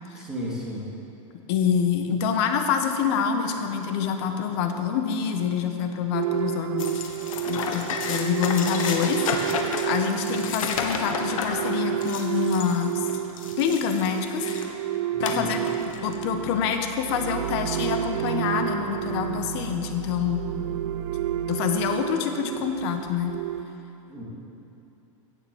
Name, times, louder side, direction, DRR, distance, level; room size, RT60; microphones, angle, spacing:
voice 1, 0.1-0.8 15.1-15.5 24.1-24.2, equal, 5° right, -7 dB, 3.1 m, -33 dB
voice 2, 1.5-7.1 7.5-9.2 9.6-13.1 13.6-14.4 15.2-15.6 16.0-20.4 21.5-23.4, left 7 dB, 50° left, 6 dB, 1.3 m, -26 dB
sound 1, 6.1-23.6, right 11 dB, 60° right, 0.6 m, -30 dB
sound 2, 6.8-14.7 15.2-16.2, left 5 dB, 75° left, 1.5 m, -32 dB
16.5 x 7.2 x 7.3 m, 2.9 s
supercardioid pair, 155°, 17 cm